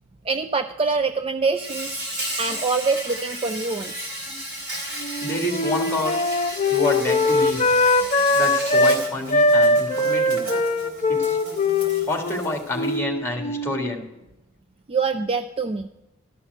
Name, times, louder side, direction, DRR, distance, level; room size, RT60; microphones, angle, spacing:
voice 1, 0.2-2.0 2.4-4.1 14.9-15.9, right 4 dB, 25° right, 7 dB, 0.3 m, -25 dB
Insect, 1.5-13.0, right 1 dB, 90° right, 3.6 m, -34 dB
Wind instrument woodwind instrument, 5.0-9.0 9.3-13.8, left 2 dB, 35° left, 0.7 m, -21 dB
voice 2, 5.2-6.2 6.7-7.6 8.3-10.5 11.1-11.4 11.9-14.1, left 2 dB, 10° left, 1 dB, 1.8 m, -28 dB
13.0 x 5.7 x 7.9 m, 0.92 s
head